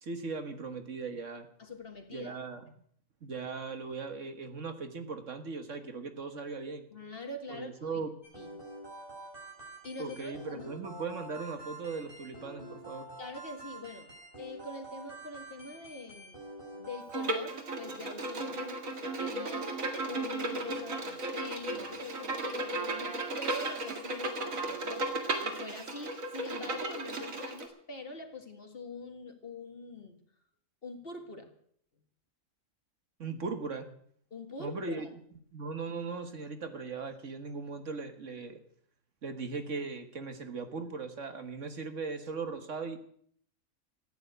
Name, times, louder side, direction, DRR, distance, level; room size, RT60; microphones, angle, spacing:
voice 1, 0.0-1.5 2.1-2.6 3.2-6.8 7.5-8.1 10.0-13.1 33.2-33.9 34.6-35.1 35.5-38.6 39.2-43.0, right 4 dB, 65° right, 8 dB, 1.8 m, -38 dB
voice 2, 1.6-2.4 6.9-8.0 8.4-8.5 9.8-10.7 13.2-14.1 14.4-16.5 16.7-19.7 20.1-25.1 25.4-30.2 30.8-31.5 34.3-35.1, left 3 dB, 45° left, 5 dB, 2.1 m, -44 dB
sound 1, 8.2-17.3, right 1 dB, 40° right, 5.9 m, -47 dB
Bowed string instrument, 17.1-27.6, right 2 dB, 85° right, 2.4 m, -35 dB
14.5 x 10.5 x 8.1 m, 0.63 s
omnidirectional pair, 1.4 m